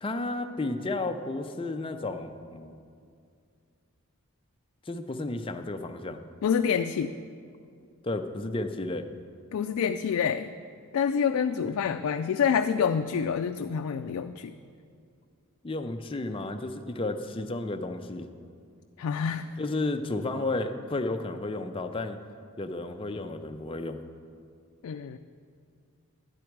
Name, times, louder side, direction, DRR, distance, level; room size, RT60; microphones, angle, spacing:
voice 1, 0.0-2.7 4.9-6.2 8.0-9.1 11.6-11.7 15.6-18.3 19.6-22.2 22.6-24.0, left 2 dB, 25° left, 6 dB, 0.5 m, -32 dB
voice 2, 6.4-7.1 9.5-10.5 10.9-14.5 19.0-19.5 24.8-25.2, left 7 dB, 85° left, 7 dB, 0.3 m, -27 dB
11.5 x 9.8 x 4.6 m, 2.3 s
head